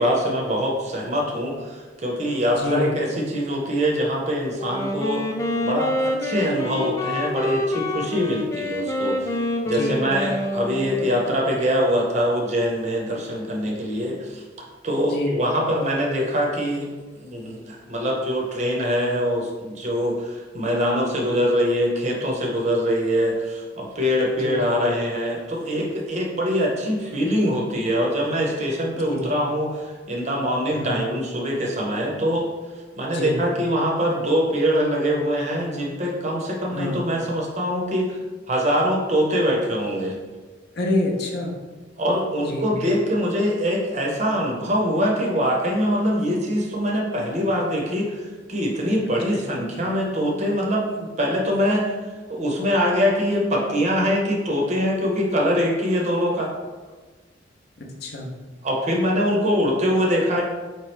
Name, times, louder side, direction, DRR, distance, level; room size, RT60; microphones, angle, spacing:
voice 1, 0.0-5.2 5.6-9.4 9.7-14.4 14.8-16.9 17.2-32.5 33.0-38.2 38.5-40.2 42.0-51.9 52.3-56.5 58.6-60.4, equal, 35° right, -1 dB, 0.6 m, -23 dB
voice 2, 2.5-2.9 9.7-10.0 15.0-15.3 24.4-24.6 29.1-29.3 30.8-31.0 33.1-33.4 36.7-37.0 40.7-41.5 42.4-42.7 49.3-49.4 57.8-58.3, left 1 dB, 55° left, 0 dB, 0.7 m, -27 dB
Wind instrument woodwind instrument, 4.6-11.3, left 1 dB, 15° left, 0.3 m, -27 dB
4.5 x 2.9 x 3.2 m, 1.3 s
head